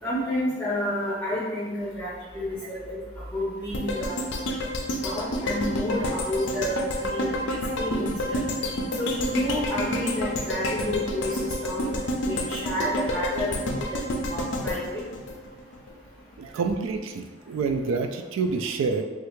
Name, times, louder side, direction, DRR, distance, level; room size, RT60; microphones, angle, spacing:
voice 1, 0.0-3.0 3.3-4.3 5.0-7.4 7.8-8.4 9.0-14.0 14.3-15.0, left 1 dB, 10° left, -11 dB, 0.8 m, -30 dB
sound 1, 3.7-15.9 16.3-16.4, left 1 dB, 60° left, 0.4 m, -29 dB
voice 2, 16.4-19.0, right 4 dB, 80° right, 6 dB, 0.3 m, -27 dB
3.2 x 2.4 x 3.1 m, 1.3 s
head